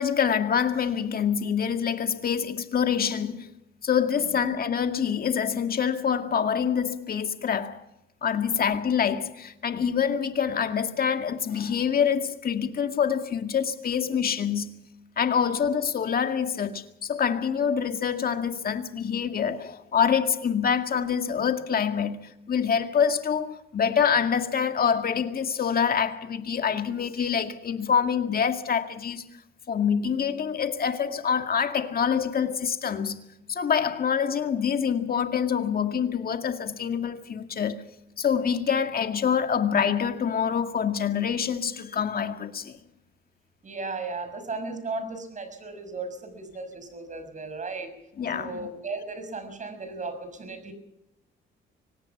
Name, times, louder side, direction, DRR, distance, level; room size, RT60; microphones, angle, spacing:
voice 1, 0.0-3.5 3.8-7.8 8.2-14.8 15.2-29.3 29.7-33.2 33.5-37.8 38.2-42.8 48.2-48.5, left 7 dB, 50° left, 2.1 m, -26 dB
voice 2, 43.6-47.9 48.3-50.7, right 3 dB, 40° right, 5.9 m, -35 dB
24.5 x 19.0 x 6.0 m
cardioid pair, 90°, 20 cm